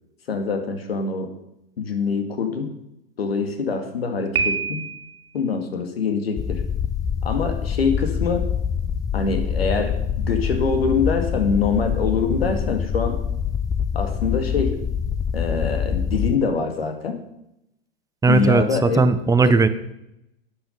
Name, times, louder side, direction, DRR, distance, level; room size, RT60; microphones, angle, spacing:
voice 1, 0.3-1.3 1.8-2.7 3.2-4.9 5.3-6.6 7.2-8.4 9.1-13.2 13.9-14.8 15.3-17.2 18.3-19.1 19.4-19.6, left 5 dB, 80° left, 6 dB, 2.1 m, -24 dB
Piano, 4.3-5.3, right 6 dB, 70° right, 1.9 m, -26 dB
sound 1, 6.4-16.4, left 7 dB, 10° left, 0.4 m, -25 dB
voice 2, 18.2-19.7, right 4 dB, 10° right, 12 dB, 0.8 m, -17 dB
12.0 x 8.6 x 5.5 m, 0.83 s
hypercardioid pair, 95°, 30 cm